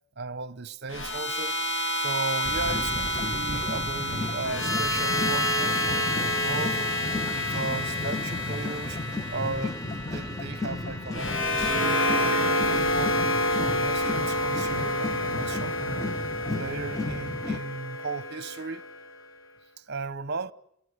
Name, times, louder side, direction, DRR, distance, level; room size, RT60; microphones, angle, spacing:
voice 1, 0.2-1.6 2.0-6.8 7.3-9.0 9.3-13.2 13.5-16.2 16.6-18.8 19.8-20.5, right 4 dB, 55° right, 1.0 m, -36 dB
sound 1, 0.9-19.1, left 1 dB, 60° left, 2.2 m, -28 dB
sound 2, 2.4-17.6, left 2 dB, 15° left, 1.6 m, -34 dB
28.5 x 18.5 x 8.2 m
head